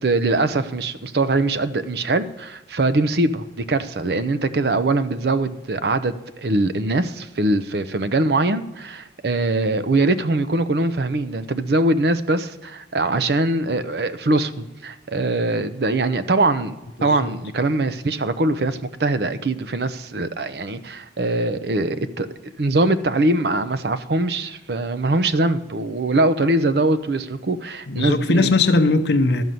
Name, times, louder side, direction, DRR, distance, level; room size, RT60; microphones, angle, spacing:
voice 1, 0.0-16.7 17.0-28.5, right 2 dB, 60° right, 0.6 m, -22 dB
voice 2, 17.0-17.3 27.9-29.4, left 3 dB, 65° left, 0.7 m, -19 dB
12.5 x 5.4 x 7.6 m
head